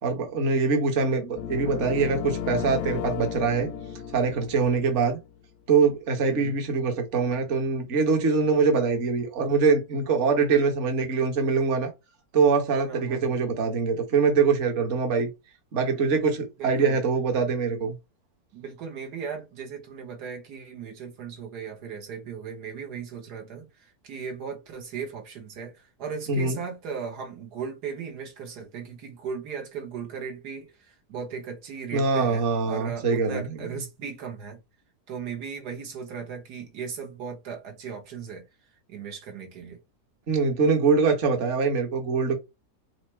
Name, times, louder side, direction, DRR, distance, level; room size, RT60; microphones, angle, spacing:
voice 1, 0.0-3.7 4.1-5.2 5.7-11.9 12.3-15.3 15.7-18.0 26.3-26.6 31.9-33.6 40.3-42.4, right 4 dB, 50° right, 1.3 m, -23 dB
sound 1, 1.4-5.3, left 9 dB, 70° left, 0.8 m, -34 dB
voice 2, 12.9-13.3 16.6-17.0 18.5-34.6 35.1-38.4 38.9-39.8, right 6 dB, 75° right, 1.7 m, -37 dB
4.9 x 2.0 x 4.3 m
omnidirectional pair, 1.7 m